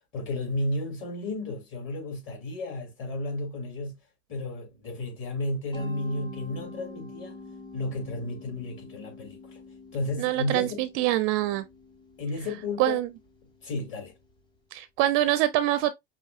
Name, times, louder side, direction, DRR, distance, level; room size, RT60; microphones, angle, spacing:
voice 1, 0.1-4.0 4.3-7.4 7.7-9.6 9.9-10.8 12.2-13.0 13.6-14.1, left 2 dB, 35° left, 2.5 m, -33 dB
Mallet percussion, 5.7-14.5, left 2 dB, 15° left, 1.1 m, -46 dB
voice 2, 10.2-11.7 12.8-13.1 14.7-15.9, right 15 dB, 40° right, 0.4 m, -25 dB
5.6 x 3.0 x 2.4 m
supercardioid pair, 140°, 34 cm